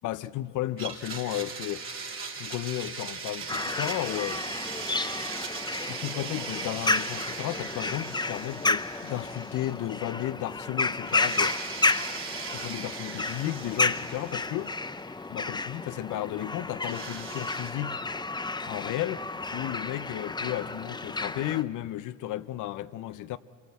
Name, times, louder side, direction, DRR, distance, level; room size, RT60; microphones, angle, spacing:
voice 1, 0.0-1.8 2.4-4.4 5.9-11.6 12.5-14.7 15.3-18.0 18.7-19.3 19.5-23.4, left 14 dB, 80° left, 0.7 m, -33 dB
Domestic sounds home sounds, 0.8-9.9 10.2-10.3 11.1-15.0 16.8-17.7, right 5 dB, 45° right, 2.6 m, -39 dB
sound 1, 3.5-21.6, left 3 dB, 15° left, 0.7 m, -32 dB
27.0 x 22.0 x 8.2 m
cardioid pair, 90°, 30 cm